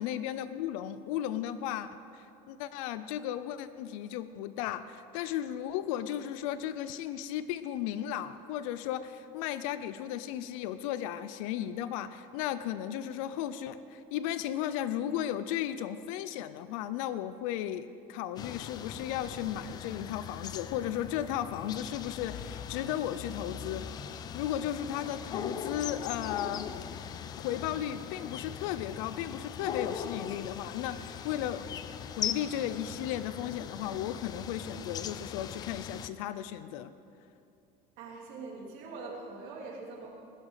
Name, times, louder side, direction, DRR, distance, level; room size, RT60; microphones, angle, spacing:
voice 1, 0.0-23.9 24.3-26.7 27.4-31.7 32.2-36.9, left 11 dB, 85° left, 13 dB, 0.6 m, -35 dB
sound 1, 18.4-36.1, left 8 dB, 25° left, 0.4 m, -40 dB
voice 2, 38.0-40.1, right 3 dB, 55° right, -2 dB, 3.5 m, -43 dB
19.0 x 11.0 x 5.7 m, 2.6 s
cardioid pair, 180°, 17 cm